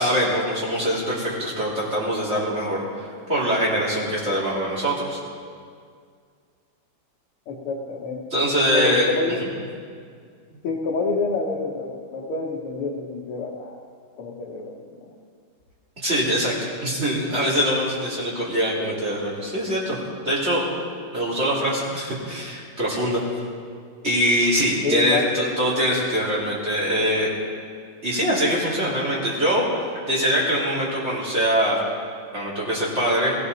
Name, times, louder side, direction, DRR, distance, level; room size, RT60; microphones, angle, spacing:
voice 1, 0.0-5.2 8.3-9.5 10.5-10.6 16.0-20.0 20.2-20.7 21.1-23.2 24.0-27.3 28.0-29.6 30.1-31.8 32.3-33.4, equal, 30° right, -6 dB, 3.6 m, -23 dB
voice 2, 7.5-9.4 10.6-13.9 14.2-14.9 24.8-25.3, left 3 dB, 90° left, -3 dB, 2.1 m, -28 dB
17.0 x 15.5 x 4.1 m, 2.1 s
omnidirectional pair, 2.4 m